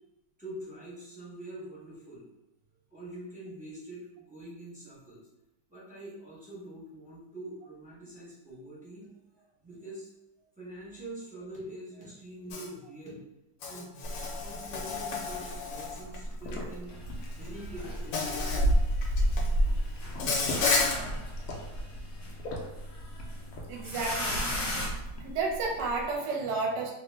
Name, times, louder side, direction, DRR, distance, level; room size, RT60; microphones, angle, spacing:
voice 1, 0.4-2.2 2.9-5.3 5.7-10.1 10.4-13.2 13.7-17.0 17.3-18.7 19.0-19.1, right 1 dB, 10° right, -8 dB, 0.4 m, -45 dB
Insect, 12.5-12.7 13.6-16.2 17.3-17.5 18.1-18.7 19.0-19.5 20.2-21.0, left 4 dB, 85° left, 1.3 m, -31 dB
sound 1, 14.1-26.2, right 1 dB, 70° left, 0.9 m, -33 dB
sound 2, 16.9-24.9, left 1 dB, 55° left, 1.4 m, -39 dB
voice 2, 23.7-24.4 25.2-26.9, right 3 dB, 75° right, -1 dB, 1.3 m, -31 dB
3.1 x 2.1 x 3.2 m, 0.93 s
omnidirectional pair, 1.9 m